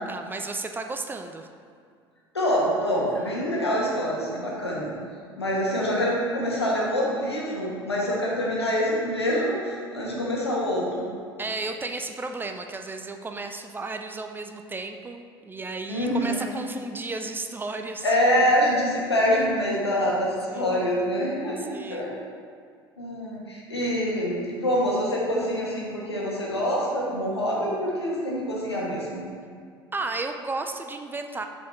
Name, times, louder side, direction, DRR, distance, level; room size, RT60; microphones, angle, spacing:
voice 1, 0.1-1.5 3.1-3.3 11.4-18.5 20.5-20.7 21.7-22.1 29.9-31.5, right 3 dB, 15° right, 6 dB, 0.4 m, -34 dB
voice 2, 2.3-4.9 5.4-11.1 15.9-16.5 18.0-22.1 23.0-29.2, equal, 80° left, -4 dB, 1.2 m, -25 dB
7.1 x 4.2 x 4.4 m, 2.2 s
figure-of-eight pair, 65°, 13 cm